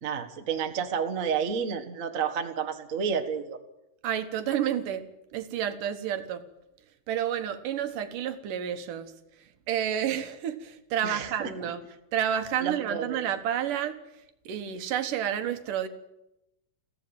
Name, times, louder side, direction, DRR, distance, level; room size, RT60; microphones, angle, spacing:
voice 1, 0.0-3.6 11.0-11.5 12.6-13.2, right 7 dB, 50° right, 6 dB, 1.0 m, -30 dB
voice 2, 4.0-6.4 7.1-9.1 9.7-11.8 12.1-14.0 14.5-15.9, right 9 dB, 65° right, 9 dB, 2.6 m, -30 dB
22.0 x 16.0 x 8.9 m, 0.88 s
omnidirectional pair, 4.3 m